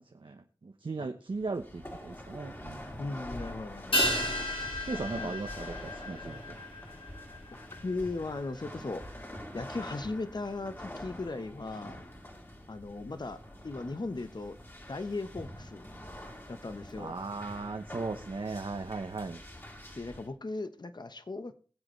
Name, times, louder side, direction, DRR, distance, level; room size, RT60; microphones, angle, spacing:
voice 1, 0.0-2.8 4.9-6.5 17.0-19.4, right 3 dB, 70° right, 5 dB, 1.0 m, -37 dB
sound 1, 1.3-20.3, left 1 dB, 25° left, 3.0 m, -45 dB
voice 2, 3.0-4.1 5.1-5.3 7.5-7.6 7.8-9.0 9.5-12.0 12.7-13.4 13.6-14.6 14.9-15.9 16.5-17.2 20.0-21.5, left 3 dB, 55° left, 11 dB, 1.1 m, -37 dB
sound 2, 3.9-8.6 8.9-9.0, left 1 dB, 85° left, 4.6 m, -34 dB
21.5 x 7.8 x 3.2 m, 0.38 s
wide cardioid pair, 55°, 9 cm